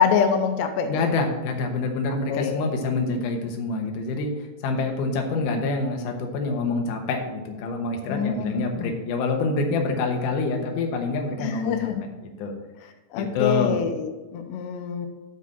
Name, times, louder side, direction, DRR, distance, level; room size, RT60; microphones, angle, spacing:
voice 1, 0.0-1.0 2.3-2.7 8.1-8.9 11.4-12.0 13.1-15.1, left 8 dB, 85° left, 6 dB, 2.8 m, -25 dB
voice 2, 0.9-4.3 4.6-11.9 12.2-12.5 13.1-13.8, left 3 dB, 65° left, 3 dB, 2.1 m, -26 dB
8.1 x 4.8 x 7.4 m, 1.1 s
omnidirectional pair, 4.9 m